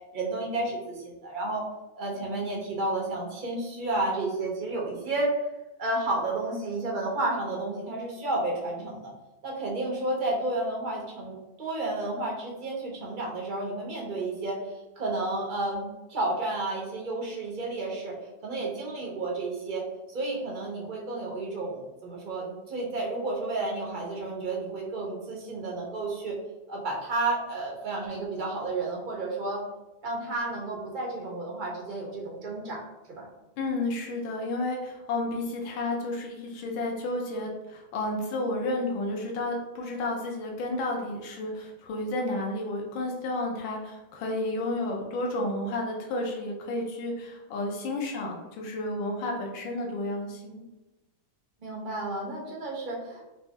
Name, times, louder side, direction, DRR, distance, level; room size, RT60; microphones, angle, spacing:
voice 1, 0.1-1.6 1.9-5.3 5.8-9.1 9.4-14.6 15.0-15.8 16.1-18.1 18.4-19.8 20.1-26.4 26.7-29.6 30.0-32.8 33.1-33.3 51.6-53.2, right 2 dB, 40° right, -2 dB, 0.6 m, -31 dB
voice 2, 33.6-50.6, left 2 dB, 75° left, 0 dB, 1.6 m, -31 dB
4.1 x 2.7 x 3.5 m, 1.0 s
omnidirectional pair, 2.2 m